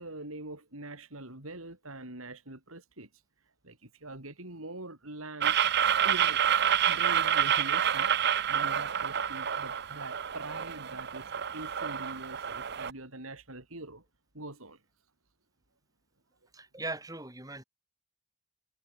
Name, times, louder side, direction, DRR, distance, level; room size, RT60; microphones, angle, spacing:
voice 1, 0.0-3.1 3.6-5.6 6.0-6.5 6.9-8.1 8.5-14.0 14.3-14.8, right 2 dB, 80° right, 5.4 m, -43 dB
sound 1, 5.4-12.9, right 9 dB, 50° right, 0.7 m, -28 dB
voice 2, 16.5-17.6, right 2 dB, 15° right, 6.2 m, -39 dB
head